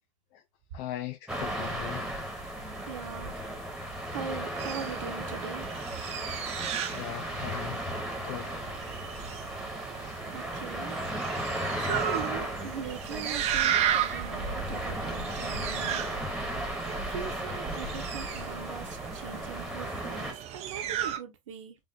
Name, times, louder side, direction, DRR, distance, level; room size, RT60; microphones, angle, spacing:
voice 1, 0.7-2.1 6.9-7.8 8.2-8.6 10.0-10.2, left 15 dB, 45° left, 0.7 m, -39 dB
sound 1, 1.3-20.3, right 1 dB, ahead, 1.6 m, -35 dB
voice 2, 2.7-3.5 3.9-5.7 10.3-11.0 11.3-16.0 16.9-21.8, right 8 dB, 60° right, 1.2 m, -41 dB
sound 2, 4.6-21.2, right 10 dB, 35° right, 0.8 m, -35 dB
5.5 x 3.1 x 2.9 m
figure-of-eight pair, 80°, 18 cm